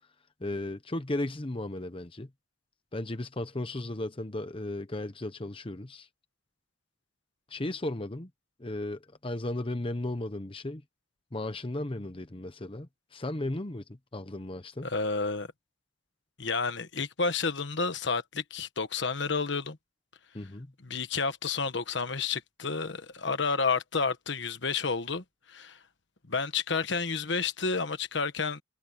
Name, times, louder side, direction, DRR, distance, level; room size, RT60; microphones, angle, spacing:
voice 1, 0.4-2.3 2.9-6.1 7.5-8.3 8.6-10.8 11.3-14.9 20.3-20.7, left 1 dB, 25° left, 0.9 m, -35 dB
voice 2, 14.8-15.5 16.4-19.8 20.8-25.8 26.3-28.6, left 4 dB, 60° left, 1.3 m, -30 dB
head